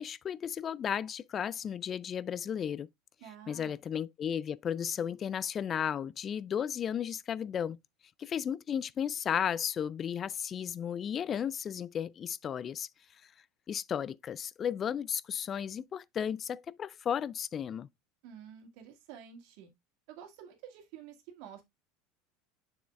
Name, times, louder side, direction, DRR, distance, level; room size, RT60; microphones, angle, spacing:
voice 1, 0.0-2.9 3.5-7.8 8.2-12.9 13.2-13.3 13.7-17.9, left 8 dB, 35° left, 0.3 m, -34 dB
voice 2, 3.2-3.8 18.2-19.7 20.1-21.6, right 8 dB, 65° right, 2.0 m, -50 dB
7.1 x 6.4 x 2.3 m
hypercardioid pair, 90°, 0 cm